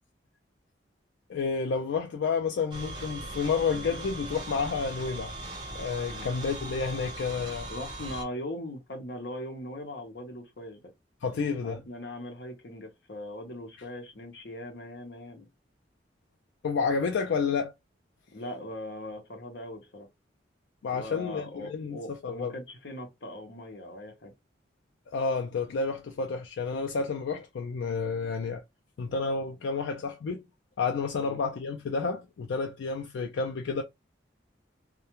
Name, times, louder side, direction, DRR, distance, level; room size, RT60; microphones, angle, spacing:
voice 1, 1.3-5.3 5.7-7.7 11.2-11.8 16.6-17.7 20.8-22.5 25.1-28.6 29.0-30.4 30.8-33.8, left 5 dB, 80° left, 0.4 m, -30 dB
sound 1, 2.7-8.2, right 1 dB, 25° right, 0.8 m, -39 dB
voice 2, 7.7-10.8 11.6-15.5 18.3-20.1 20.9-24.3 31.2-31.4, left 1 dB, 60° left, 0.7 m, -40 dB
2.3 x 2.1 x 2.9 m
head